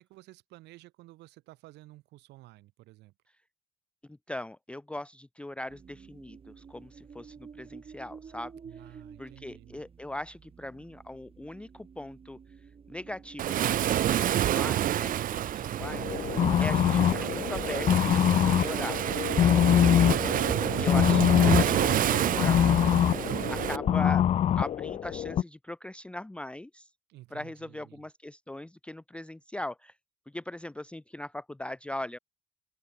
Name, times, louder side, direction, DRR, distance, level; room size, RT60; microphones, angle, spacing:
voice 1, 0.0-3.1 8.6-9.9 27.1-28.1, right 18 dB, 85° right, 5.4 m, -52 dB
voice 2, 4.1-8.5 9.2-12.4 12.9-19.0 20.1-20.3 20.7-23.0 23.5-26.9 27.3-29.9 30.3-32.2, left 1 dB, 5° left, 0.7 m, -40 dB
sound 1, 5.7-24.1, right 6 dB, 35° right, 3.4 m, -49 dB
Waves surf, 13.4-23.8, right 12 dB, 55° right, 0.8 m, -28 dB
sound 2, 15.8-25.4, left 10 dB, 40° left, 0.3 m, -24 dB
open air
cardioid pair, 110°, 17 cm